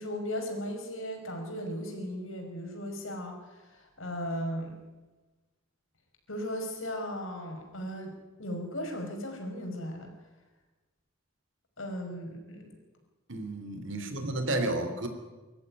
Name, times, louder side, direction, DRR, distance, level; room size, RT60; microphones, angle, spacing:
voice 1, 0.0-4.8 6.3-10.1 11.8-12.7, equal, 85° left, 2 dB, 5.5 m, -37 dB
voice 2, 13.3-15.1, right 2 dB, 70° right, 7 dB, 3.3 m, -32 dB
25.0 x 14.0 x 9.7 m, 1.2 s
head